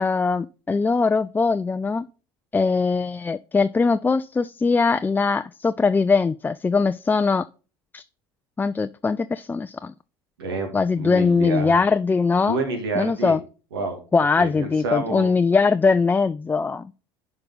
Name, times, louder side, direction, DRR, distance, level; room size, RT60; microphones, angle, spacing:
voice 1, 0.0-2.1 2.5-7.5 7.9-8.0 8.6-9.9 10.7-12.6 13.0-13.4 14.1-16.9, left 4 dB, 15° left, 0.4 m, -21 dB
voice 2, 11.0-11.8 12.4-13.4 13.7-14.0 14.4-15.3, right 3 dB, 85° right, 2.1 m, -28 dB
10.5 x 5.3 x 4.0 m
hypercardioid pair, 75°, 12 cm